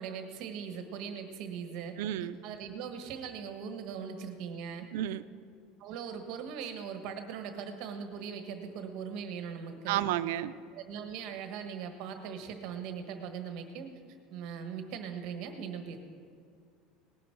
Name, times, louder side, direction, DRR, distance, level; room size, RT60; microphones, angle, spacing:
voice 1, 0.0-2.0 2.4-4.9 5.8-10.0 10.7-13.9 14.3-16.0, right 7 dB, 50° right, 6 dB, 1.3 m, -40 dB
voice 2, 2.0-2.3 4.9-5.2 9.9-10.5, right 13 dB, 80° right, 13 dB, 0.5 m, -31 dB
18.5 x 10.0 x 4.6 m, 2.3 s
cardioid pair, 175°, 0 cm